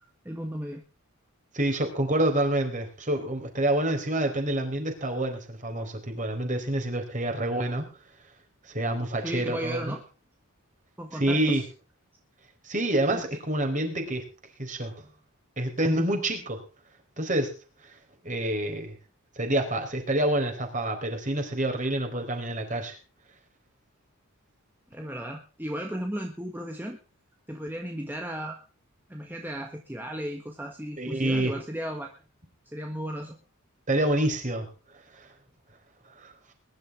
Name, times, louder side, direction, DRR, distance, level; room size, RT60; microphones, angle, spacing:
voice 1, 0.3-0.8 9.2-10.0 11.0-11.6 13.1-13.2 24.9-27.0 27.5-28.6 29.1-32.1 32.7-33.4, equal, 10° right, 2 dB, 1.6 m, -35 dB
voice 2, 1.5-7.8 8.7-10.0 11.1-11.6 12.6-14.2 14.6-15.1 15.6-16.6 17.2-17.6 18.2-19.0 19.4-22.9 31.0-31.5 33.9-34.7 35.1-35.3 36.2-36.3, right 1 dB, 35° right, 5 dB, 4.3 m, -27 dB
22.0 x 11.5 x 3.7 m, 0.34 s
head